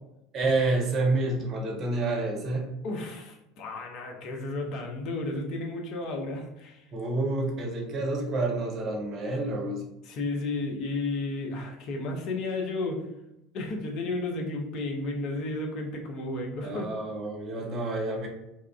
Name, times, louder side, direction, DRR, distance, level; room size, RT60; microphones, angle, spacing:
voice 1, 0.3-2.7 6.9-9.8 16.6-18.3, right 2 dB, 40° right, 1 dB, 0.7 m, -28 dB
voice 2, 2.8-6.9 10.1-13.0 13.5-16.9, left 2 dB, 50° left, 2 dB, 0.5 m, -33 dB
3.0 x 2.3 x 2.3 m, 0.87 s
figure-of-eight pair, 70°, 0 cm